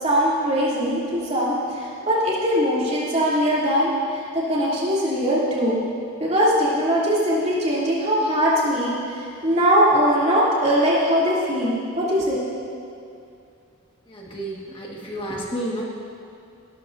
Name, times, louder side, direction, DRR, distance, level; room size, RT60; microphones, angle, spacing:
voice 1, 0.0-5.8 6.2-12.7, equal, 30° right, -8 dB, 2.9 m, -21 dB
voice 2, 14.1-15.8, right 1 dB, 25° left, -3 dB, 1.6 m, -31 dB
17.0 x 12.5 x 2.7 m, 2.5 s
head